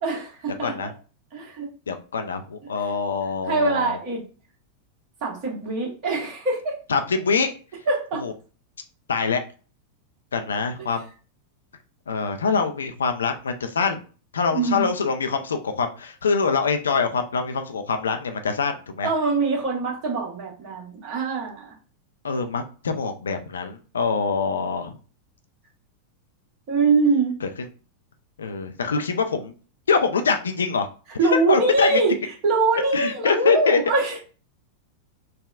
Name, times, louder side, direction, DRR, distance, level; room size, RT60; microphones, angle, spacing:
voice 1, 0.0-0.9 1.3-1.7 2.6-3.0 3.4-4.2 5.2-6.8 7.9-8.3 10.8-10.9 14.5-14.9 19.0-21.7 26.7-27.3 31.2-34.2, right 3 dB, 40° right, -2 dB, 1.2 m, -23 dB
voice 2, 1.9-4.0 6.9-7.5 8.2-8.3 9.1-9.4 10.3-11.1 12.1-14.0 14.3-19.1 22.2-24.9 28.4-29.5 29.9-30.9 31.5-32.0 32.9-33.8, left 5 dB, 70° left, 6 dB, 0.4 m, -24 dB
3.4 x 2.2 x 2.3 m, 0.36 s
figure-of-eight pair, 90°, 0 cm